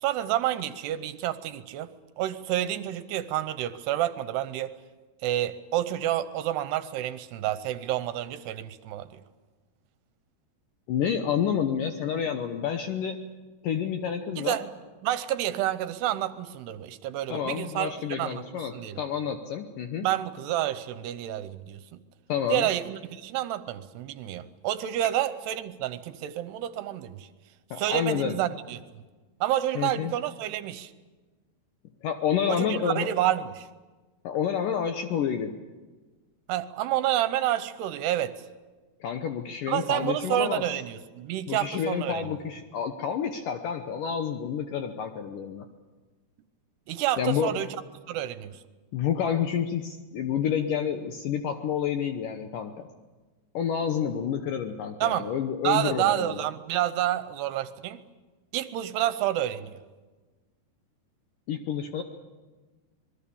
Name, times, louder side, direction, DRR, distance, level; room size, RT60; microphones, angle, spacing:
voice 1, 0.0-1.9 2.2-4.7 5.2-9.2 14.4-14.7 15.0-18.4 18.7-19.0 20.0-22.0 22.5-27.3 27.8-28.8 29.4-30.9 32.5-33.7 36.5-38.3 39.7-42.3 46.9-47.7 48.1-48.6 55.0-55.3 55.6-58.0 58.5-59.8, right 13 dB, 80° right, 13 dB, 2.8 m, -29 dB
voice 2, 10.9-13.2 13.6-14.6 17.3-20.1 22.3-22.7 27.7-28.4 29.8-30.1 32.0-33.1 34.2-35.5 39.0-40.8 41.5-45.7 47.2-47.5 48.9-52.9 53.5-56.5 61.5-62.0, left 8 dB, 70° left, 6 dB, 2.0 m, -29 dB
26.0 x 21.0 x 7.1 m, 1.3 s
omnidirectional pair, 5.0 m